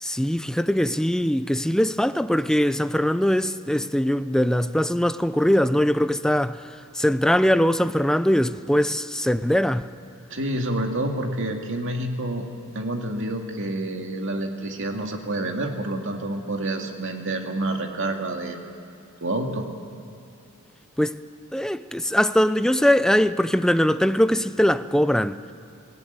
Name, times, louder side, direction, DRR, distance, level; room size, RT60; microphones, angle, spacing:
voice 1, 0.0-6.6 6.9-9.9 21.0-21.2 21.5-25.4, equal, 5° left, 0.5 m, -21 dB
voice 2, 10.3-12.5 12.7-18.6 19.2-19.7, right 1 dB, 60° right, 2.4 m, -28 dB
22.5 x 18.0 x 9.6 m
head